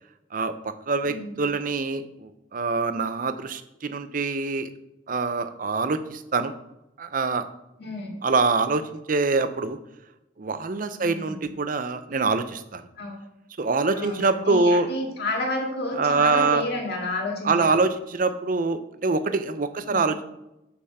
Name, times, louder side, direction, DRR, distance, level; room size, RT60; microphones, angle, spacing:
voice 1, 0.3-4.7 5.1-6.5 7.0-7.5 8.2-9.8 10.4-12.8 13.6-14.9 15.9-16.6 17.4-20.2, right 3 dB, 40° right, 10 dB, 0.5 m, -25 dB
voice 2, 1.0-1.4 7.8-8.1 11.0-11.4 13.0-13.2 13.9-17.8 19.8-20.0, left 2 dB, 55° left, 0 dB, 1.9 m, -31 dB
5.6 x 4.9 x 6.5 m, 0.90 s
head